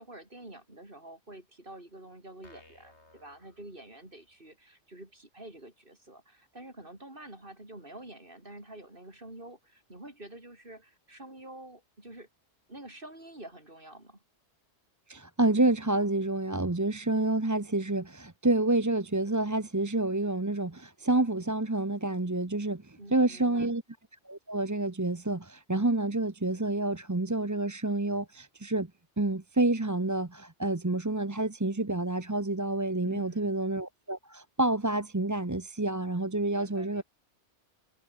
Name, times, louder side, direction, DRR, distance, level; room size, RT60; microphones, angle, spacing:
voice 1, 0.0-12.3 12.7-14.2 23.0-23.7 33.0-33.5 36.5-37.0, right 1 dB, 50° right, 5.8 m, -48 dB
sound 1, 2.4-4.4, left 2 dB, 75° left, 5.3 m, -59 dB
voice 2, 15.1-23.8 24.3-28.9 29.2-37.0, right 2 dB, 15° right, 1.0 m, -28 dB
omnidirectional pair, 1.2 m